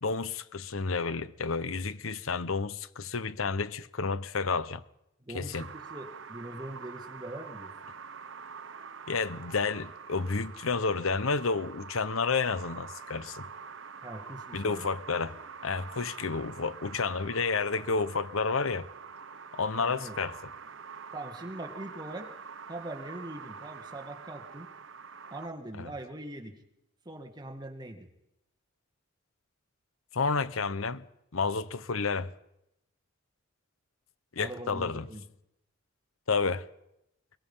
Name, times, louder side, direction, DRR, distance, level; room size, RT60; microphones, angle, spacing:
voice 1, 0.0-4.8 5.3-5.7 9.1-13.4 14.5-15.4 15.6-18.9 19.5-20.4 25.8-25.9 30.1-31.0 31.3-32.3 34.3-35.1 36.3-36.6, left 4 dB, 90° left, 1.0 m, -30 dB
voice 2, 5.2-7.7 14.0-14.9 19.8-20.2 21.1-22.3 22.7-24.7 25.3-26.6 27.1-28.1 34.4-35.3, right 1 dB, 20° right, 2.0 m, -42 dB
sound 1, 5.5-25.5, right 6 dB, 65° right, 0.9 m, -46 dB
22.5 x 21.0 x 5.6 m
head